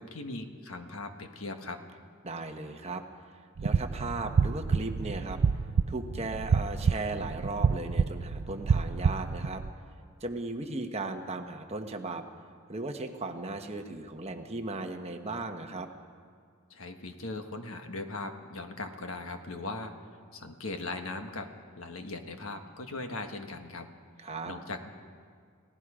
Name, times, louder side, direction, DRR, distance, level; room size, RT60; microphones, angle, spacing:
voice 1, 0.0-1.8 16.7-19.9 20.3-23.9 24.4-24.9, left 2 dB, 65° left, 6 dB, 1.4 m, -39 dB
voice 2, 2.2-3.0 3.6-5.4 5.9-9.6 10.2-12.2 12.7-15.9 24.2-24.5, right 2 dB, 30° right, 5 dB, 1.1 m, -36 dB
sound 1, 3.6-9.7, right 5 dB, 60° right, 0.4 m, -28 dB
30.0 x 17.5 x 5.0 m, 2.1 s
head